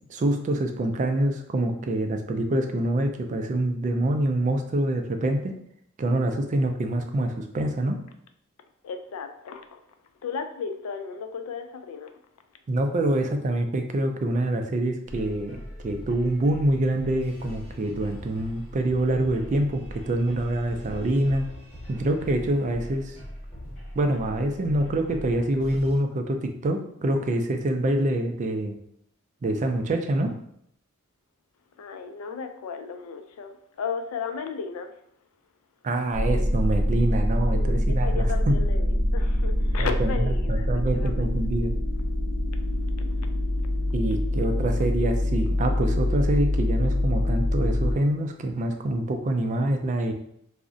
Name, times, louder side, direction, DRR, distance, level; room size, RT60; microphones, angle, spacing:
voice 1, 0.1-5.5 6.0-8.0 12.7-15.6 15.8-21.5 21.9-23.2 23.9-28.7 29.4-30.3 35.8-38.6 39.8-41.7 43.9-50.1, right 1 dB, 35° right, 0.3 m, -26 dB
voice 2, 8.8-9.8 10.2-12.2 31.8-34.9 37.5-41.4 43.1-43.2, left 5 dB, 85° left, 0.4 m, -35 dB
sound 1, 15.1-26.0, equal, 30° left, 1.3 m, -41 dB
sound 2, 36.1-47.9, left 1 dB, 85° right, 0.8 m, -25 dB
2.5 x 2.0 x 3.6 m
head